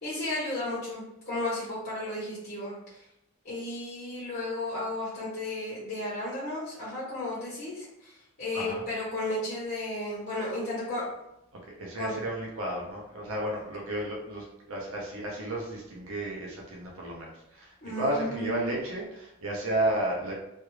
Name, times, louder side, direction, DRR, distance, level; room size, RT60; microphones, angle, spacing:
voice 1, 0.0-3.0 3.4-8.1 8.4-11.0 12.0-12.2 17.8-18.7, left 1 dB, 45° left, -8 dB, 0.9 m, -34 dB
voice 2, 8.5-8.8 11.5-20.3, right 1 dB, 85° right, -2 dB, 0.6 m, -33 dB
3.2 x 2.3 x 3.1 m, 0.85 s
head